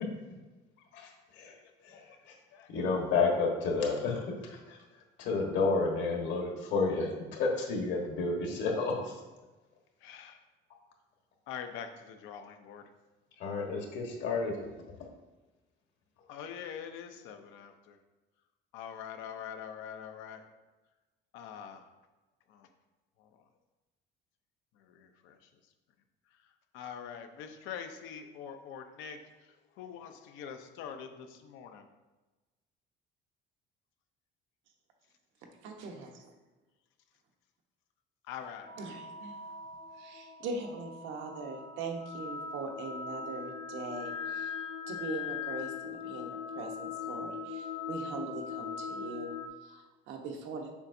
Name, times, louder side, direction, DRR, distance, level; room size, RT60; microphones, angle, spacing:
voice 1, 0.9-1.5 1.8-2.4 2.7-9.2 13.4-14.7, left 3 dB, 70° left, 1 dB, 1.4 m, -31 dB
voice 2, 1.4-2.2 2.5-2.7 10.0-10.4 11.5-12.8 16.2-18.0 18.7-20.5 21.3-21.9 22.5-22.7 23.2-23.5 24.7-25.7 26.3-31.9 38.2-38.7, left 8 dB, 85° left, 6 dB, 0.7 m, -45 dB
voice 3, 35.6-36.3 38.8-39.4 40.0-44.5 44.9-50.7, right 3 dB, 80° right, 2 dB, 1.0 m, -41 dB
sound 1, 38.6-49.5, left 6 dB, 35° left, 0.6 m, -40 dB
7.1 x 5.8 x 2.7 m, 1.2 s
cardioid pair, 165°, 20 cm